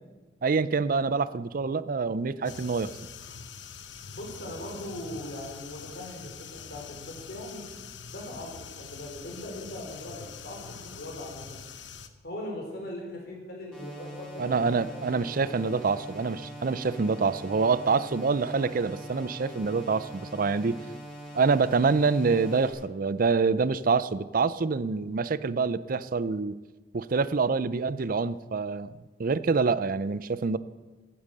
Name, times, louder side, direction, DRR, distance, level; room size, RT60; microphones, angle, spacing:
voice 1, 0.4-2.9 14.4-20.8 21.3-26.6 26.9-28.9 29.2-30.6, right 4 dB, 50° right, 16 dB, 0.5 m, -26 dB
sound 1, 2.4-12.1, left 7 dB, 80° left, 0.9 m, -44 dB
voice 2, 4.1-7.6 8.1-11.6 12.2-14.9 15.4-15.7, left 1 dB, 60° left, -1 dB, 4.4 m, -40 dB
sound 2, 13.7-22.7, right 1 dB, 5° left, 4.6 m, -43 dB
15.5 x 8.8 x 6.6 m, 1.3 s
head